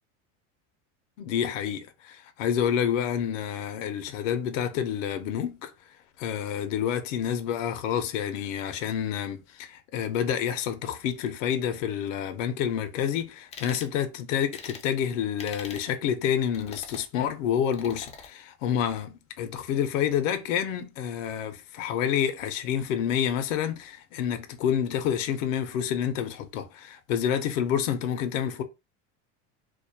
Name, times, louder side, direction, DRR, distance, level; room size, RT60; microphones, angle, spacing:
voice 1, 1.2-5.7 6.2-28.6, left 9 dB, 85° left, 0.6 m, -28 dB
sound 1, 13.5-13.9 14.5-14.9 15.4-15.9 16.5-17.1 17.7-18.3, left 6 dB, 20° left, 0.3 m, -43 dB
2.3 x 2.1 x 2.7 m
supercardioid pair, 120°, 37 cm